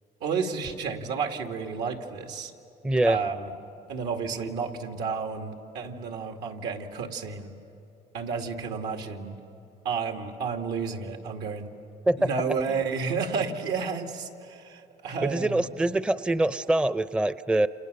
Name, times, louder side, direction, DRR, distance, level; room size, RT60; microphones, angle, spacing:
voice 1, 0.2-2.5 3.0-3.5 3.9-7.6 8.1-9.4 9.8-11.7 12.2-15.7, right 5 dB, 85° right, 4 dB, 2.4 m, -31 dB
voice 2, 2.8-3.2 12.1-12.3 15.2-17.7, right 1 dB, 5° right, 14 dB, 0.5 m, -24 dB
30.0 x 28.0 x 6.8 m, 3.0 s
cardioid pair, 110°, 17 cm